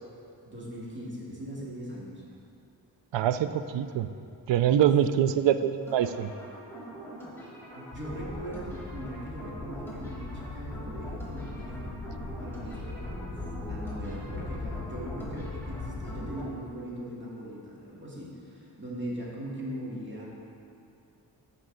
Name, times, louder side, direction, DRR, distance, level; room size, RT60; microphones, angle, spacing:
voice 1, 0.4-2.2 5.1-5.2 7.7-12.0 12.3-20.3, equal, 25° right, -5 dB, 2.2 m, -40 dB
voice 2, 3.1-4.1 4.5-6.3, right 10 dB, 80° right, 11 dB, 0.5 m, -24 dB
sound 1, 5.9-16.5, right 1 dB, 5° left, 1.7 m, -44 dB
sound 2, 7.9-16.3, left 3 dB, 45° left, 2.0 m, -39 dB
14.5 x 5.3 x 3.9 m, 2.5 s
wide cardioid pair, 105°, 43 cm